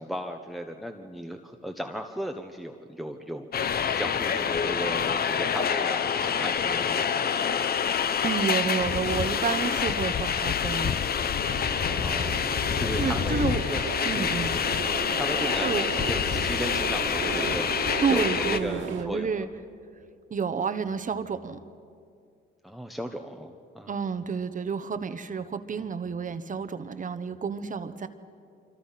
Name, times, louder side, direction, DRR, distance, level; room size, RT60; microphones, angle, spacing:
voice 1, 0.0-3.5 3.9-7.3 11.7-13.8 14.1-14.3 15.1-19.4 22.6-23.9, equal, ahead, 5 dB, 1.2 m, -36 dB
sound 1, 3.5-18.6, left 7 dB, 50° left, 0.9 m, -27 dB
voice 2, 8.2-10.9 13.0-13.6 14.0-14.5 15.6-15.8 18.0-19.5 20.3-21.6 23.9-28.1, right 6 dB, 40° right, 10 dB, 1.1 m, -30 dB
sound 2, 11.4-19.0, right 6 dB, 80° right, 2.2 m, -36 dB
26.0 x 25.0 x 5.9 m, 2.4 s
cardioid pair, 90°, 20 cm